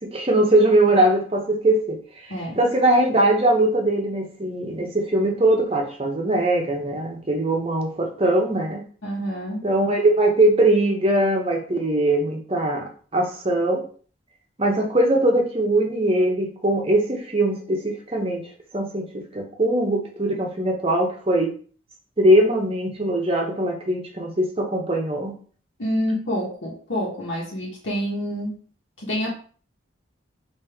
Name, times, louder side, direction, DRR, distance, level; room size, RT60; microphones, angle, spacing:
voice 1, 0.0-8.8 9.6-13.8 14.6-18.5 18.7-21.5 22.2-25.3, right 1 dB, 30° right, 2 dB, 0.8 m, -21 dB
voice 2, 9.0-9.7 25.8-28.6 29.0-29.3, equal, 80° left, -3 dB, 1.2 m, -27 dB
5.1 x 2.6 x 3.4 m, 0.43 s
head